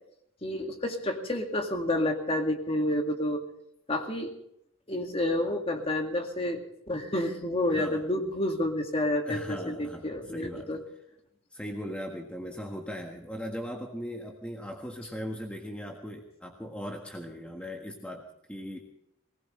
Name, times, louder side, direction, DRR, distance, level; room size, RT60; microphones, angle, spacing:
voice 1, 0.4-3.4 3.9-4.3 4.9-6.6 6.9-10.8, left 1 dB, 25° left, 4 dB, 2.1 m, -29 dB
voice 2, 7.7-8.0 9.2-10.8 11.5-18.8, equal, 5° left, 2 dB, 1.5 m, -39 dB
21.0 x 19.0 x 3.3 m, 0.77 s
head